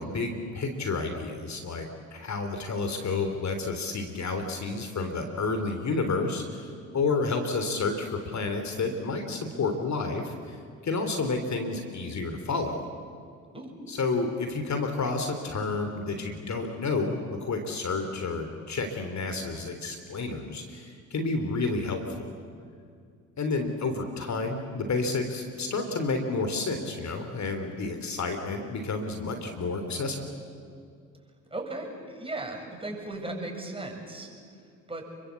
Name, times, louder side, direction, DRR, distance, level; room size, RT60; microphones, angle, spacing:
voice 1, 0.0-10.6 10.8-12.8 13.9-22.3 23.4-30.4, left 3 dB, 40° left, 6 dB, 3.4 m, -30 dB
voice 2, 31.5-34.3 34.9-35.1, right 2 dB, 15° right, 1 dB, 7.9 m, -36 dB
29.5 x 23.5 x 8.4 m, 2.2 s
hypercardioid pair, 60°, 41 cm